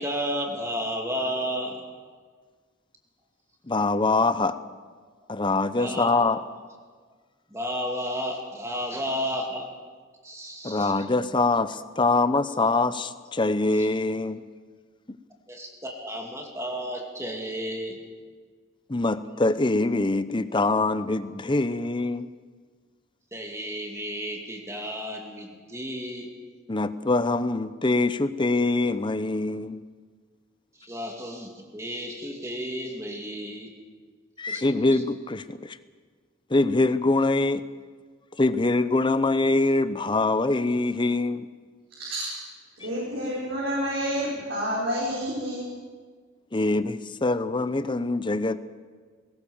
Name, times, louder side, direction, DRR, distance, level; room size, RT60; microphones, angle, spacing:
voice 1, 0.0-1.8 5.7-6.1 7.5-9.7 10.2-10.9 13.8-13.9 15.5-18.0 23.3-26.3 30.8-33.7 34.5-34.6, equal, 15° right, 1 dB, 2.6 m, -32 dB
voice 2, 3.6-4.6 5.3-6.4 10.6-14.4 15.1-15.2 18.9-22.3 26.7-29.8 34.4-35.8 36.5-37.6 38.4-41.5 42.8-42.9 46.5-48.6, left 2 dB, 25° left, 13 dB, 0.7 m, -24 dB
voice 3, 41.9-42.3 42.8-45.6, equal, 70° right, -5 dB, 5.0 m, -29 dB
20.5 x 18.0 x 7.2 m, 1.6 s
head